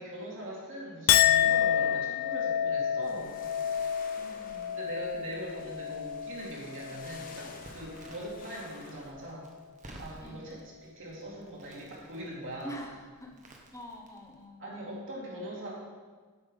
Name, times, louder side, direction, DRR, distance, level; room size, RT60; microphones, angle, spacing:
voice 1, 0.0-3.4 4.8-9.5 10.0-10.6 10.8-12.8 14.6-15.8, right 1 dB, 60° right, -4 dB, 2.3 m, -41 dB
Chink clink, 1.1-7.6 8.0-8.6, left 10 dB, 65° left, 0.4 m, -29 dB
sound 1, 3.0-9.1, left 3 dB, 40° left, 1.0 m, -51 dB
voice 2, 4.2-4.8 10.2-10.5 12.6-13.3 13.7-14.6, equal, 15° left, 1 dB, 1.0 m, -45 dB
Crackle, 7.6-14.5, right 1 dB, 35° right, 1.2 m, -54 dB
8.2 x 5.8 x 5.4 m, 1.5 s
head